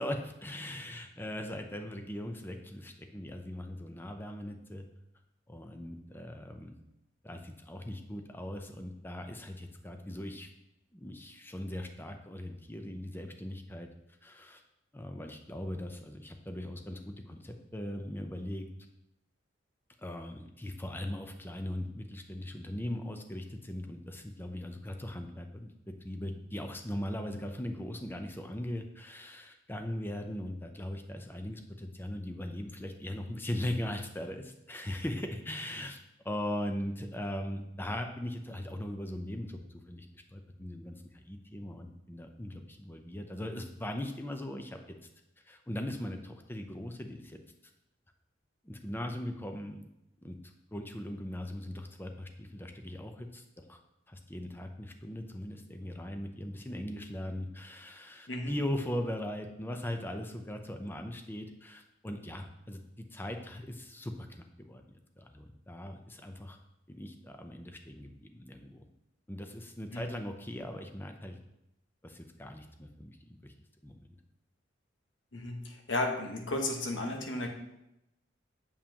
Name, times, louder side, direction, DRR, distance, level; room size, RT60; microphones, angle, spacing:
voice 1, 0.0-4.9 5.5-6.8 7.2-10.5 10.9-13.9 14.2-14.6 14.9-18.7 20.0-36.0 36.2-45.0 45.5-47.4 48.6-49.9 50.2-50.4 50.7-53.8 54.1-64.8 65.2-66.6 66.9-68.8 69.3-71.4 72.0-73.5 73.8-74.0, left 1 dB, 10° left, 5 dB, 0.6 m, -39 dB
voice 2, 75.3-77.5, left 2 dB, 90° left, 2 dB, 1.3 m, -34 dB
7.2 x 7.1 x 2.9 m, 0.86 s
head